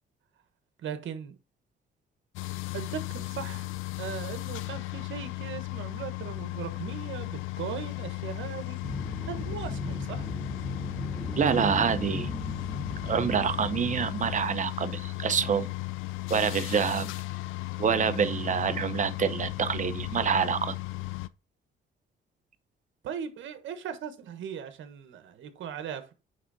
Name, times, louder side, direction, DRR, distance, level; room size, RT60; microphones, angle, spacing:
voice 1, 0.8-1.4 2.7-3.7 4.0-10.3 23.0-26.1, right 8 dB, 75° right, 1.2 m, -38 dB
sound 1, 2.4-21.3, left 18 dB, 90° left, 0.5 m, -36 dB
sound 2, 8.8-14.0, left 1 dB, 5° left, 0.4 m, -36 dB
voice 2, 11.4-12.3 13.0-15.7 16.3-17.1 17.8-20.8, right 7 dB, 40° right, 0.8 m, -27 dB
9.1 x 3.5 x 4.1 m
cardioid pair, 90°, 20 cm